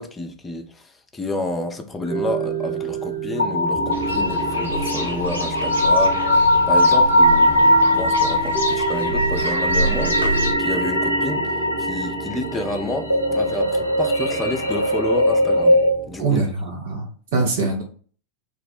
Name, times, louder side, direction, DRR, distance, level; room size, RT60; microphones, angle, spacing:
voice 1, 0.0-11.5 11.8-15.8 16.1-16.4 17.3-17.7, left 2 dB, 15° left, 0.5 m, -29 dB
sound 1, 2.1-16.4, right 5 dB, 35° right, 1.1 m, -31 dB
sound 2, 3.4-15.9, left 1 dB, 80° left, 0.4 m, -20 dB
sound 3, 3.9-10.5, right 1 dB, 85° right, 1.0 m, -29 dB
voice 2, 16.2-17.8, right 4 dB, 55° right, 0.7 m, -23 dB
2.4 x 2.1 x 3.9 m
figure-of-eight pair, 90°, 0 cm